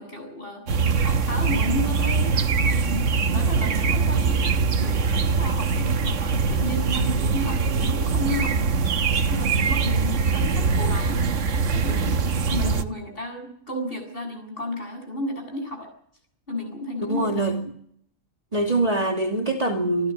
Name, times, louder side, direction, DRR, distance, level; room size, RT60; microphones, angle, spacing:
voice 1, 0.0-11.3 11.7-15.9 16.5-17.4, left 1 dB, 40° left, 4 dB, 7.6 m, -33 dB
sound 1, 0.7-12.8, right 5 dB, 60° right, 1.4 m, -22 dB
voice 2, 17.0-17.6 18.5-20.1, right 2 dB, 25° right, 3 dB, 2.6 m, -24 dB
27.0 x 13.5 x 8.8 m, 0.67 s
omnidirectional pair, 1.5 m